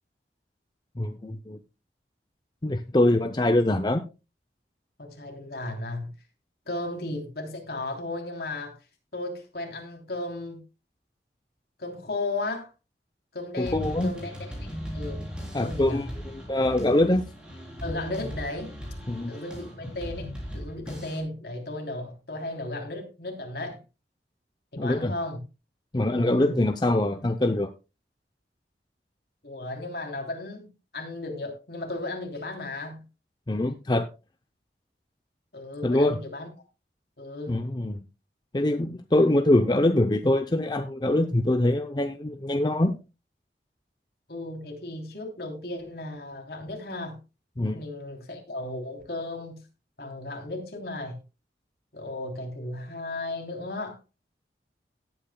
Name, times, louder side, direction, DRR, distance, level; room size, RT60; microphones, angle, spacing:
voice 1, 1.0-1.6 2.6-4.0 13.6-14.1 15.5-17.2 19.1-19.3 24.8-25.1 25.9-27.7 33.5-34.1 35.8-36.2 37.5-38.1 38.5-43.0 47.6-47.8, left 1 dB, 25° left, 7 dB, 0.6 m, -24 dB
voice 2, 5.0-6.1 6.6-8.7 9.1-10.6 11.8-12.7 13.3-15.3 15.6-16.1 17.8-18.7 19.3-23.8 24.7-25.4 26.1-26.6 29.4-30.7 30.9-33.0 35.5-36.5 37.2-37.6 44.3-47.2 47.7-49.6 50.0-51.2 51.9-54.0, left 2 dB, 65° left, 3 dB, 3.2 m, -35 dB
sound 1, 13.6-21.2, equal, 5° right, 3.5 m, -38 dB
17.5 x 8.6 x 2.2 m, 0.28 s
head